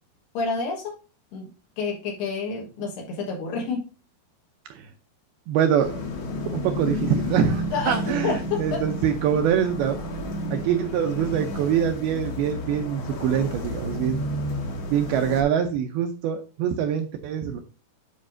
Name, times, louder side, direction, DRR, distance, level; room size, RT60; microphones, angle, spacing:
voice 1, 0.3-0.9 1.3-1.5 1.8-3.9 7.7-8.8 10.5-10.6, left 5 dB, 70° left, -1 dB, 3.3 m, -29 dB
voice 2, 5.5-6.0 6.5-10.0 10.5-14.3 14.9-17.6, right 9 dB, 80° right, 5 dB, 2.3 m, -24 dB
sound 1, 5.8-15.4, left 1 dB, 55° left, 2.0 m, -31 dB
9.7 x 5.1 x 2.5 m, 0.34 s
omnidirectional pair, 5.0 m